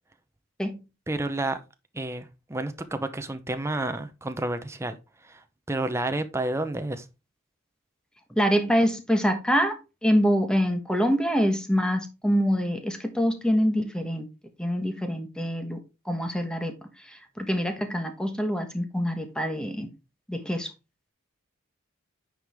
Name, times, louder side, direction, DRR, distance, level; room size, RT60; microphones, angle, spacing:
voice 1, 1.1-1.6 1.9-7.1, right 2 dB, 15° right, 0.7 m, -30 dB
voice 2, 8.3-14.3 14.6-19.9 20.3-20.7, equal, 5° left, 1.3 m, -25 dB
9.7 x 4.9 x 3.5 m
head